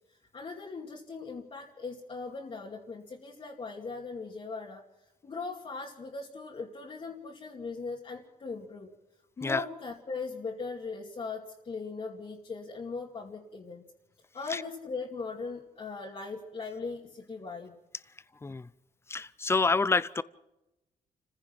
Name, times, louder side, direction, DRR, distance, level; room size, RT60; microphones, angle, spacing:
voice 1, 0.3-4.8 5.2-8.9 9.4-13.8 14.3-17.8 18.5-18.6, left 4 dB, 40° left, -3 dB, 2.5 m, -39 dB
voice 2, 19.1-20.2, left 3 dB, 15° left, 18 dB, 0.6 m, -27 dB
29.5 x 15.5 x 5.9 m, 0.95 s
wide cardioid pair, 145°, 15 cm